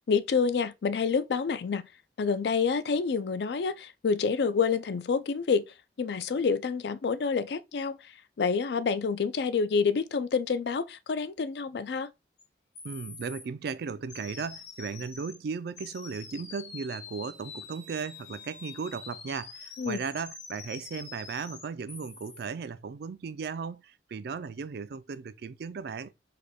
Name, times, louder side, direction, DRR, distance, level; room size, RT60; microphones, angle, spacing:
voice 1, 0.1-1.8 2.2-5.6 6.0-8.0 8.4-12.1 19.8-20.0, left 5 dB, 65° left, 0.4 m, -28 dB
sound 1, 12.4-12.5 12.7-13.4 14.1-15.4 15.8-22.4, left 5 dB, 85° left, 2.3 m, -46 dB
voice 2, 12.8-26.1, right 5 dB, 60° right, 0.4 m, -36 dB
5.0 x 2.2 x 4.2 m
head